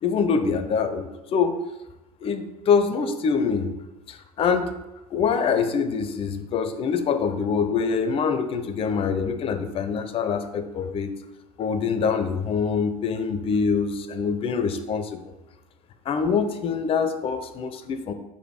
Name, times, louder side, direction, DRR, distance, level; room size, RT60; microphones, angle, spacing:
voice 1, 0.0-1.6 2.2-3.7 4.1-4.7 5.1-11.1 11.6-15.2 16.1-18.1, left 5 dB, 30° left, 9 dB, 0.4 m, -24 dB
4.2 x 2.6 x 4.7 m, 0.99 s
figure-of-eight pair, 65°, 20 cm